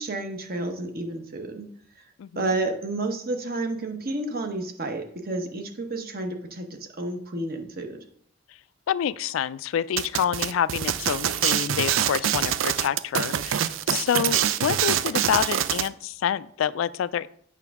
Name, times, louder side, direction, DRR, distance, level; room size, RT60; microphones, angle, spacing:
voice 1, 0.0-1.7 2.0-2.1 2.3-8.0, right 2 dB, 50° right, 5 dB, 1.0 m, -31 dB
voice 2, 8.9-17.3, left 8 dB, 85° left, 17 dB, 0.3 m, -27 dB
sound 1, 10.0-15.9, right 10 dB, 85° right, 0.4 m, -25 dB
8.6 x 5.8 x 3.5 m, 0.64 s
head